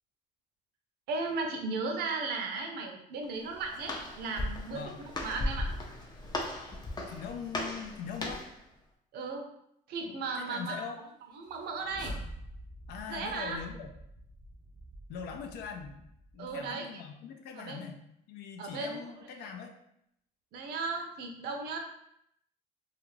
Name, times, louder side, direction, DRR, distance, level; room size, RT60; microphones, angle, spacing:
voice 1, 1.1-5.7 9.1-9.5 9.9-10.8 11.3-12.2 13.1-13.6 16.4-16.8 17.6-17.9 18.6-19.0 20.5-21.8, right 4 dB, 70° right, 3 dB, 0.6 m, -36 dB
Walk footsteps, 3.2-8.6, left 1 dB, 25° left, 0.5 m, -37 dB
voice 2, 7.1-8.5 10.1-11.0 12.9-13.9 15.1-16.1 16.3-18.0 18.3-19.7, left 6 dB, 80° left, 4 dB, 0.4 m, -42 dB
sound 1, 11.4-16.7, right 1 dB, 25° right, 0.5 m, -47 dB
2.4 x 2.4 x 3.1 m, 0.75 s
cardioid pair, 110°, 17 cm